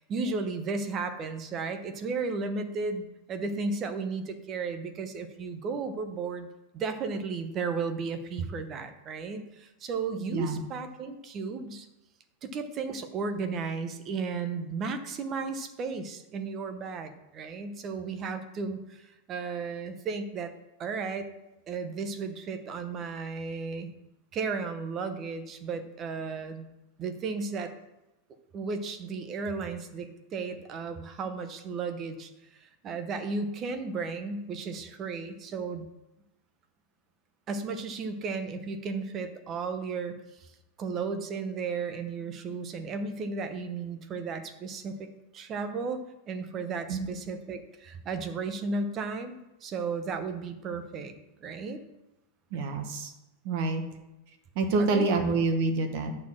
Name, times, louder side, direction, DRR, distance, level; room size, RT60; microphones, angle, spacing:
voice 1, 0.0-6.5 6.7-11.9 12.4-20.5 20.8-21.3 21.7-23.9 24.3-26.7 27.0-27.7 28.5-32.3 32.6-35.9 37.5-40.5 40.8-51.1 51.4-51.8 54.8-55.1, right 4 dB, 25° right, 8 dB, 0.8 m, -34 dB
voice 2, 10.3-10.6 46.9-47.1 52.5-53.1 53.4-53.8 54.5-56.1, right 3 dB, 45° right, 5 dB, 1.3 m, -27 dB
9.3 x 4.3 x 7.4 m, 0.96 s
supercardioid pair, 165°, 0 cm